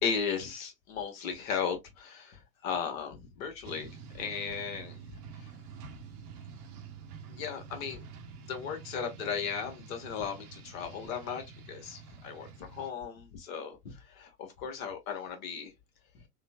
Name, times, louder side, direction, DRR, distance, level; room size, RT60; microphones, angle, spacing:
voice 1, 0.0-5.0 7.3-8.0 8.4-15.7 16.1-16.2, left 6 dB, 60° left, 1.3 m, -36 dB
sound 1, 3.6-12.9, right 5 dB, 65° right, 0.9 m, -48 dB
3.7 x 2.1 x 2.2 m
hypercardioid pair, 90°, 48 cm